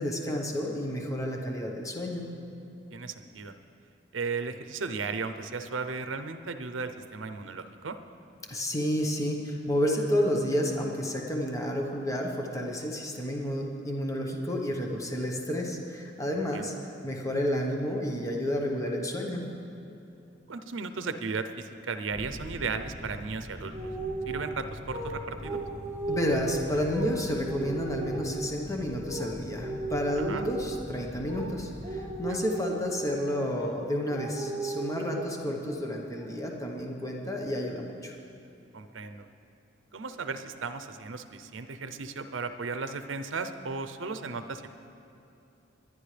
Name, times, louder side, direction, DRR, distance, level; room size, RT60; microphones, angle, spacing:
voice 1, 0.0-2.3 8.5-16.7 17.0-19.4 26.1-38.1, equal, 15° left, 0 dB, 1.1 m, -30 dB
voice 2, 2.9-3.6 4.1-8.0 16.5-16.7 20.5-23.9 24.3-25.6 30.2-30.4 32.3-32.4 38.7-39.3 39.9-44.7, right 4 dB, 75° right, 9 dB, 0.7 m, -35 dB
sound 1, 22.1-32.3, equal, 40° right, 1.5 m, -44 dB
sound 2, 23.7-24.5 24.9-25.1 25.4-27.1 27.4-28.5 29.1-29.3 29.6-30.9 31.3-31.5 31.8-33.2 33.6-33.8 34.1-35.4 35.6-35.8 36.2-36.7, right 3 dB, 10° right, 1.8 m, -36 dB
21.5 x 11.0 x 3.4 m, 2.8 s
head